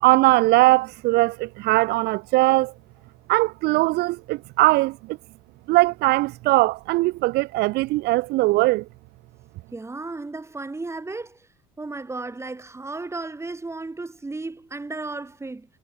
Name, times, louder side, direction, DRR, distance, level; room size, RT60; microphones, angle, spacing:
voice 1, 0.0-2.7 3.3-5.0 5.7-8.8, right 20 dB, 70° right, 1.0 m, -20 dB
voice 2, 9.7-11.5 11.8-15.7, right 3 dB, 15° right, 6.0 m, -34 dB
supercardioid pair, 85°, 18 cm